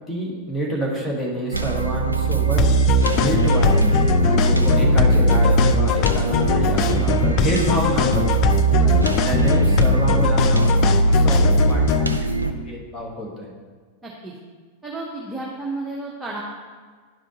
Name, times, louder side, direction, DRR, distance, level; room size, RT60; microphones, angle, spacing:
voice 1, 0.1-2.7 3.1-8.4 9.2-10.7 11.1-13.5, right 1 dB, 15° left, -2 dB, 1.6 m, -28 dB
sound 1, 1.5-12.5, right 3 dB, 85° right, 0.4 m, -19 dB
sound 2, 2.6-12.2, left 9 dB, 40° left, 0.3 m, -22 dB
voice 2, 8.7-9.2 14.0-14.3 14.8-16.4, right 2 dB, 5° right, -4 dB, 1.0 m, -32 dB
11.0 x 4.9 x 3.0 m, 1.5 s
figure-of-eight pair, 90°, 0 cm